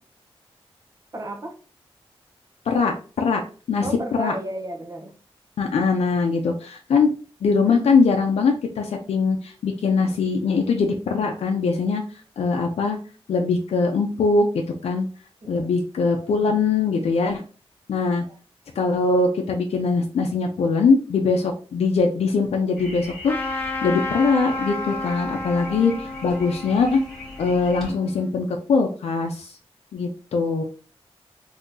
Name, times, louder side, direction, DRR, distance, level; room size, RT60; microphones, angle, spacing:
voice 1, 1.1-1.6 3.8-5.1 15.4-15.9 18.2-18.4, right 1 dB, 35° right, 0.7 m, -33 dB
voice 2, 2.7-3.4 3.7-3.9 4.2-4.3 5.6-7.1 7.4-12.0 12.4-13.0 13.3-15.1 15.5-17.4 17.9-18.2 18.8-27.0 27.4-29.6 29.9-30.6, left 4 dB, 90° left, 0.5 m, -22 dB
sound 1, 22.8-27.9, left 1 dB, ahead, 1.8 m, -41 dB
Trumpet, 23.2-28.3, left 2 dB, 20° left, 0.8 m, -31 dB
3.7 x 2.7 x 2.6 m
wide cardioid pair, 115°, 10 cm